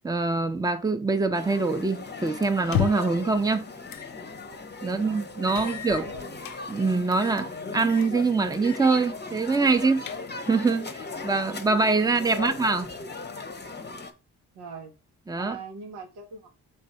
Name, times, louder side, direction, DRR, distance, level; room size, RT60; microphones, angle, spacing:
voice 1, 0.0-3.7 4.8-6.1 6.7-10.0 10.5-12.9 15.3-15.6, right 3 dB, 10° right, 0.6 m, -24 dB
sound 1, 1.3-14.1, left 3 dB, 25° left, 0.8 m, -38 dB
sound 2, 2.6-3.2 3.9-4.1 4.5-4.6 5.5-6.6 7.1-7.5 7.8-8.1 8.5-8.9 9.2-9.3 9.8-10.5, left 9 dB, 65° left, 0.6 m, -32 dB
voice 2, 4.8-5.7 6.0-6.5 12.0-12.5 14.5-14.9 15.4-16.5, right 4 dB, 90° right, 0.8 m, -42 dB
3.4 x 3.3 x 4.0 m
supercardioid pair, 40°, 38 cm